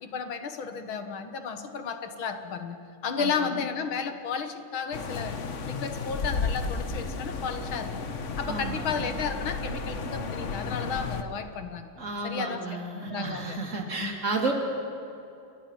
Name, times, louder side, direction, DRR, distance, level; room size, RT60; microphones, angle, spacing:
voice 1, 0.0-5.4 5.7-8.1 8.4-11.9 12.2-12.6 13.0-13.6 13.9-14.2, left 6 dB, 75° left, 8 dB, 2.2 m, -33 dB
sound 1, 4.9-11.2, left 4 dB, 40° left, 1.3 m, -33 dB
voice 2, 8.5-9.1 12.0-14.5, right 3 dB, 35° right, 1 dB, 3.5 m, -32 dB
29.5 x 22.0 x 5.9 m, 2.8 s
omnidirectional pair, 2.3 m